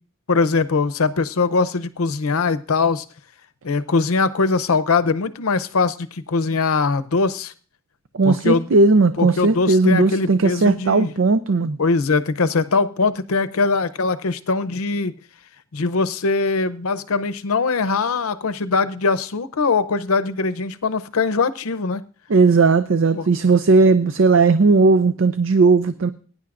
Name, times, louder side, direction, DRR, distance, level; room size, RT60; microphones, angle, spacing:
voice 1, 0.3-3.0 3.6-7.5 8.2-8.7 9.2-11.1 11.8-15.1 15.7-22.0 23.1-23.3, left 4 dB, 85° left, 0.7 m, -21 dB
voice 2, 8.1-11.8 22.3-26.1, right 3 dB, 60° right, 0.5 m, -16 dB
21.5 x 10.0 x 2.5 m
head